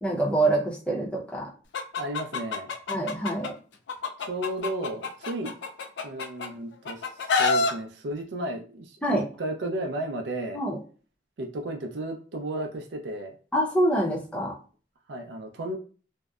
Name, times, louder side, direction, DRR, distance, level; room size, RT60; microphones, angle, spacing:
voice 1, 0.0-1.5 2.9-3.5 9.0-9.3 10.5-10.8 13.5-14.6, right 1 dB, 5° left, -3 dB, 0.6 m, -25 dB
Chicken rooster, 1.7-3.5 3.9-6.5 6.8-7.7, left 4 dB, 75° left, 0.4 m, -27 dB
voice 2, 2.0-2.7 4.2-5.5 6.0-10.6 11.4-13.4 15.1-15.8, right 1 dB, 70° right, 3 dB, 0.4 m, -34 dB
2.6 x 2.0 x 2.3 m, 0.39 s
head